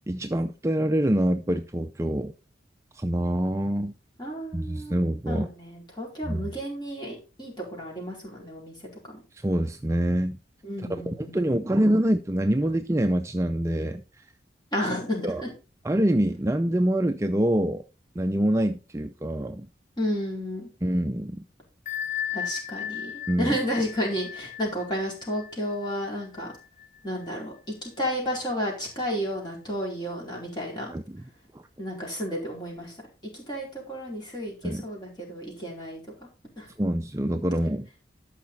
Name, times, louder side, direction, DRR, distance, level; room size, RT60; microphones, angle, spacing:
voice 1, 0.1-2.3 2.9-3.9 4.5-5.5 6.3-6.5 9.3-10.4 10.9-14.0 15.2-15.4 15.9-17.8 18.2-19.7 20.8-21.4 23.3-23.6 30.9-31.2 31.5-31.6 34.6-34.8 36.8-37.9, right 1 dB, 15° right, 0.4 m, -25 dB
voice 2, 4.2-4.9 5.3-8.8 9.0-9.2 10.6-11.5 14.7-15.5 20.0-20.7 22.3-26.5 27.0-27.5 27.8-31.0 31.8-32.9 33.3-36.3 36.6-36.7, equal, 25° left, 4.4 m, -32 dB
Bell, 21.9-27.3, left 9 dB, 40° left, 1.0 m, -36 dB
12.5 x 5.8 x 4.1 m
head